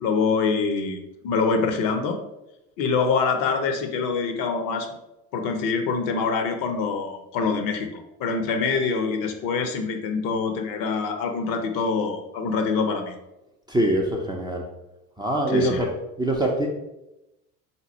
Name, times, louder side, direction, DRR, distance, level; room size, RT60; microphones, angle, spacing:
voice 1, 0.0-2.2 2.8-4.9 5.3-13.1 15.5-15.8, left 4 dB, 45° left, 7 dB, 0.7 m, -25 dB
voice 2, 13.7-14.6 15.2-15.9 16.2-16.7, right 1 dB, 10° right, -1 dB, 0.5 m, -23 dB
4.0 x 2.9 x 4.1 m, 0.92 s
figure-of-eight pair, 60°, 47 cm